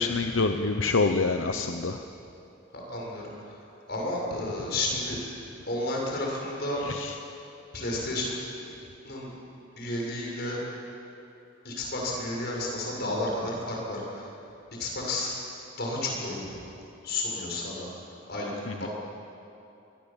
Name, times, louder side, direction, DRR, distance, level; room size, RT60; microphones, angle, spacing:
voice 1, 0.0-2.0 6.8-7.2 18.7-18.9, left 3 dB, 85° left, 6 dB, 0.9 m, -26 dB
voice 2, 2.7-5.2 5.7-6.8 7.7-8.3 9.0-9.3 9.8-10.6 11.6-14.3 14.8-15.4 15.8-16.6 17.0-17.9 18.3-18.5 18.8-18.9, left 2 dB, 55° left, -2 dB, 6.7 m, -32 dB
24.0 x 21.5 x 7.4 m, 2.8 s
head